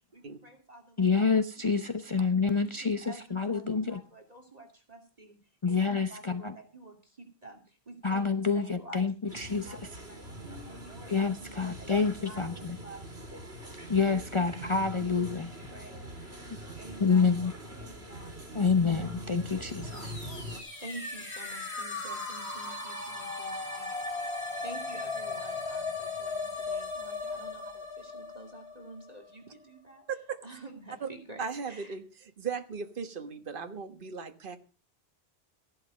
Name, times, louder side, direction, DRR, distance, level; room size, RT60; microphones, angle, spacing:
voice 1, 0.1-1.3 2.1-2.2 2.8-5.4 5.7-8.2 8.5-10.5 10.8-13.1 13.9-16.4 16.8-17.2 17.8-18.8 19.6-20.2 20.5-24.3 24.6-30.1 30.4-31.4 31.7-32.0, right 2 dB, 40° right, 3 dB, 2.7 m, -50 dB
voice 2, 1.0-4.0 5.6-6.6 8.0-9.8 11.1-12.8 13.9-15.5 17.0-17.5 18.5-20.1, left 5 dB, 30° left, 8 dB, 0.9 m, -27 dB
sound 1, 9.3-20.6, right 1 dB, 80° right, 3.4 m, -43 dB
sound 2, 19.6-29.3, left 3 dB, 85° left, 3.8 m, -37 dB
voice 3, 31.4-32.0 32.4-34.6, right 5 dB, 55° right, 8 dB, 1.6 m, -37 dB
15.0 x 11.5 x 5.1 m, 0.35 s
omnidirectional pair, 1.1 m